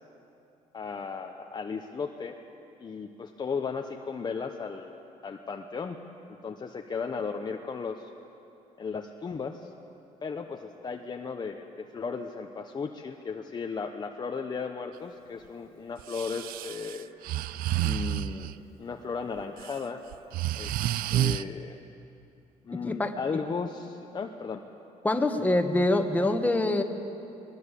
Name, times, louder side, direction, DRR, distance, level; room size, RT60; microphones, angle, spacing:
voice 1, 0.7-2.4 2.8-6.0 6.3-8.1 8.8-9.7 10.2-17.1 17.8-20.0 20.6-21.8 22.6-24.6, left 5 dB, 30° left, 4 dB, 1.0 m, -35 dB
Breathing, 16.0-18.5 19.4-19.7 20.1-21.4, right 13 dB, 85° right, 0.5 m, -30 dB
voice 2, 22.8-23.1 25.0-26.8, left 2 dB, 10° left, 5 dB, 1.6 m, -25 dB
21.5 x 20.0 x 8.4 m, 2.8 s
cardioid pair, 130°, 15 cm